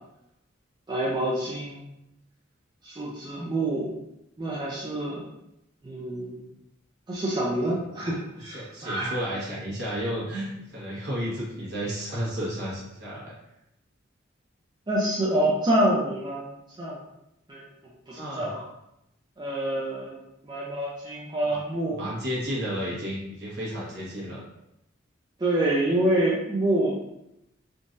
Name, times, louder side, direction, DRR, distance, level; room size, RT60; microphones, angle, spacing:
voice 1, 0.9-1.9 2.8-3.9 4.4-5.2 5.8-6.5 7.1-9.2 14.9-16.5 16.8-17.0 17.5-17.6 18.1-18.6 19.4-20.2 20.4-22.0 25.4-27.0, right 1 dB, 25° right, -5 dB, 0.4 m, -27 dB
voice 2, 8.4-13.3 18.1-18.5 21.5-21.6 21.9-24.4, equal, 55° right, -6 dB, 1.2 m, -32 dB
3.7 x 2.5 x 2.5 m, 0.84 s
head